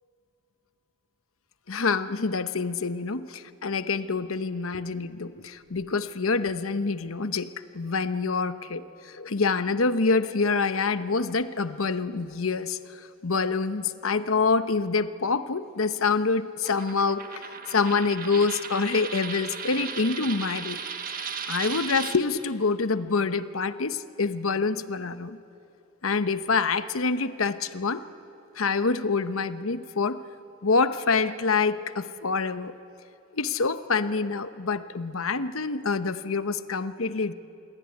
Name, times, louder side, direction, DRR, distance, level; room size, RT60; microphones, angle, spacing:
voice 1, 1.7-17.2 17.7-20.8 21.1-25.4 26.0-28.0 28.6-30.2 30.6-32.7 33.3-37.3, left 4 dB, 75° left, 12 dB, 1.0 m, -26 dB
Coin (dropping), 16.7-22.2, right 6 dB, 40° right, 1.5 m, -36 dB
27.0 x 22.0 x 9.8 m, 2.8 s
head